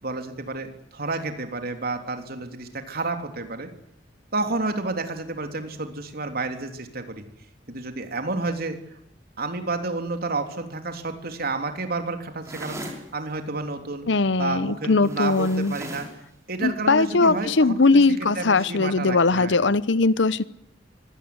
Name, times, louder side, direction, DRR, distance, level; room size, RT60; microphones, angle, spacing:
voice 1, 0.0-3.7 4.3-7.2 7.7-9.0 9.4-14.1 14.4-16.1 16.5-19.6, right 3 dB, 55° right, 6 dB, 3.4 m, -30 dB
sound 1, 12.4-13.0 15.0-16.2, right 1 dB, 15° right, 5.4 m, -38 dB
voice 2, 14.1-15.7 16.6-20.4, left 3 dB, 70° left, 18 dB, 0.9 m, -20 dB
24.0 x 17.5 x 9.8 m, 0.79 s
head